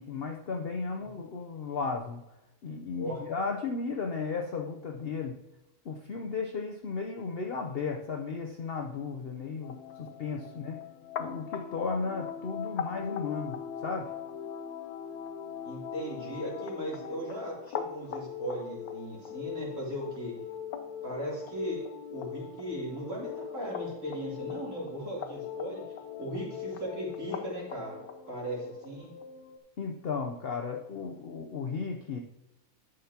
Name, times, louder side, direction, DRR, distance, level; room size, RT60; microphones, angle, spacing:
voice 1, 0.0-2.2 2.6-5.4 5.8-10.8 11.2-14.1 29.8-32.2, left 4 dB, 50° left, 2 dB, 0.8 m, -35 dB
sound 1, 9.6-29.6, left 8 dB, 80° left, 1.2 m, -40 dB
voice 2, 15.6-20.3 21.0-25.8 26.2-28.0 28.3-29.1, equal, 60° right, -6 dB, 3.6 m, -37 dB
11.5 x 6.6 x 2.9 m, 0.95 s
omnidirectional pair, 1.5 m